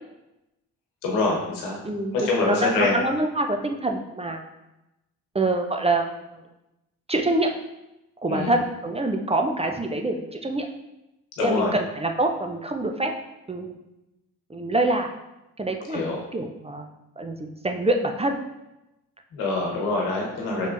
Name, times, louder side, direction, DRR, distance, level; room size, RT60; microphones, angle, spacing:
voice 1, 1.0-1.8 2.1-3.0 8.3-8.5 11.4-11.7 15.9-16.2 19.3-20.7, left 3 dB, 90° left, -1 dB, 1.2 m, -25 dB
voice 2, 1.8-4.4 5.3-6.4 7.1-7.5 8.2-10.7 11.4-13.1 13.5-13.8 14.5-15.1 15.6-16.9 17.2-18.4 20.5-20.7, right 2 dB, 15° right, 4 dB, 0.5 m, -26 dB
5.7 x 3.5 x 2.5 m, 0.94 s
supercardioid pair, 55°, 39 cm